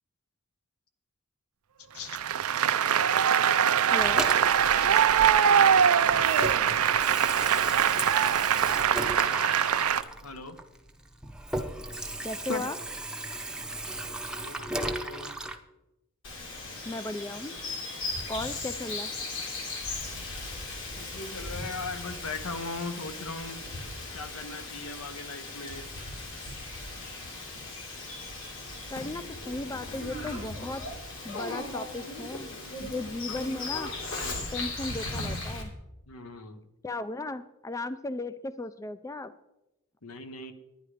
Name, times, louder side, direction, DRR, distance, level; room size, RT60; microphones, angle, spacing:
Applause, 2.1-10.0, right 8 dB, 80° right, 0.5 m, -23 dB
voice 1, 3.9-4.3 12.2-12.8 16.9-17.5 18.3-19.1 28.9-30.9 31.2-32.5 32.8-33.9 34.5-35.7 36.8-39.3, left 2 dB, 15° left, 14 dB, 0.3 m, -36 dB
Water tap faucet / Sink (filling or washing), 4.0-5.8 6.1-15.6, right 1 dB, 5° right, 0.7 m, -36 dB
voice 2, 10.2-10.6 12.5-12.6 13.9-15.3 21.0-23.6 24.1-25.9 32.9-33.4 34.1-34.4 36.1-36.7 40.0-40.5, left 3 dB, 85° left, 9 dB, 1.1 m, -39 dB
Bird vocalization bird call bird song, 16.2-35.6, left 2 dB, 65° left, 2.6 m, -37 dB
10.5 x 10.5 x 4.9 m, 0.92 s
head